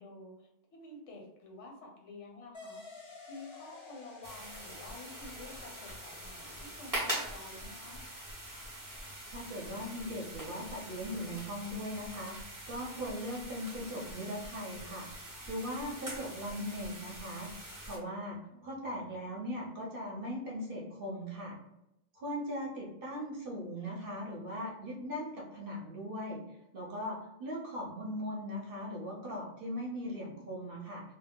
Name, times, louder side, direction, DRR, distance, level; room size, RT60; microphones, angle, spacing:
voice 1, 0.0-2.8 3.3-8.0 18.0-18.7, left 2 dB, 75° left, 1 dB, 1.0 m, -50 dB
sound 1, 2.5-11.6, left 3 dB, 50° left, 0.3 m, -55 dB
sound 2, 4.2-18.0, right 1 dB, 25° right, 0.4 m, -43 dB
voice 2, 9.3-15.1 15.5-17.5 17.9-21.6 22.1-26.4 26.7-31.0, equal, 55° right, -3 dB, 0.8 m, -39 dB
2.3 x 2.1 x 3.5 m, 0.84 s
omnidirectional pair, 1.3 m